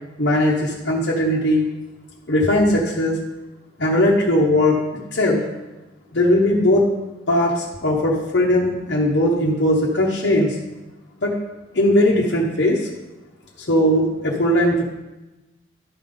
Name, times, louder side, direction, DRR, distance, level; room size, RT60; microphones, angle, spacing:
voice 1, 0.2-1.7 2.3-3.2 3.8-4.8 5.1-5.4 6.1-6.9 7.3-10.6 11.2-11.3 11.7-12.9 13.6-14.8, left 1 dB, 60° left, -4 dB, 1.0 m, -18 dB
12.0 x 5.2 x 3.9 m, 1.0 s
head